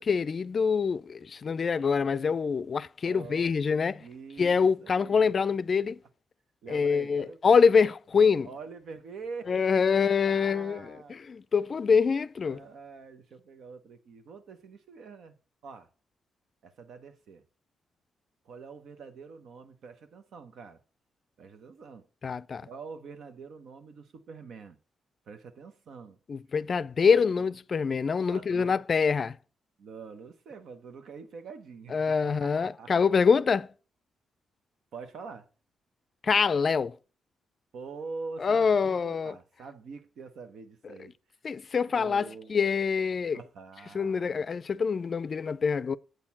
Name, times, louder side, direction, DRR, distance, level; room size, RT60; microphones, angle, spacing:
voice 1, 0.0-4.0 4.4-6.0 6.7-8.5 9.5-10.9 11.3-12.6 22.2-22.7 26.3-29.4 31.9-33.7 36.2-36.9 38.4-39.3 41.4-43.4 43.9-46.0, left 5 dB, 50° left, 0.4 m, -25 dB
voice 2, 3.0-3.5 4.0-5.3 6.6-7.8 8.4-9.8 10.2-11.2 12.4-15.4 15.6-15.9 16.6-17.4 18.4-20.8 21.4-22.1 22.6-24.8 25.3-26.2 27.1-27.2 28.3-28.7 29.8-32.0 32.2-33.1 34.9-35.5 37.7-41.1 41.9-42.6 43.3-44.3, right 4 dB, 75° right, 1.0 m, -45 dB
8.1 x 4.3 x 7.1 m
cardioid pair, 70°, 0 cm